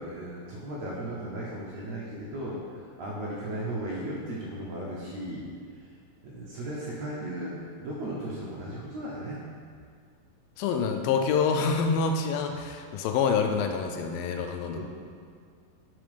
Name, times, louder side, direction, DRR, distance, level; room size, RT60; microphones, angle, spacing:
voice 1, 0.0-2.6 3.0-5.5 5.8-5.9 6.2-9.4 14.7-14.8, right 1 dB, 65° right, -5 dB, 1.9 m, -36 dB
voice 2, 10.6-14.8, left 5 dB, 85° left, 5 dB, 2.3 m, -26 dB
7.7 x 4.9 x 5.1 m, 2.1 s
omnidirectional pair, 4.2 m